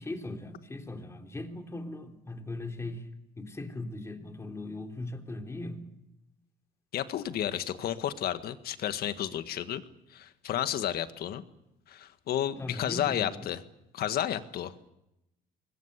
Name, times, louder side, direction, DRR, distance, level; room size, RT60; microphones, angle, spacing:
voice 1, 0.0-5.9 12.6-13.5, left 2 dB, 15° left, 4 dB, 3.3 m, -39 dB
voice 2, 6.9-9.8 10.1-11.4 11.9-13.6 13.9-14.9, left 11 dB, 65° left, 10 dB, 1.7 m, -32 dB
25.0 x 21.5 x 8.2 m, 0.89 s
cardioid pair, 110°, 17 cm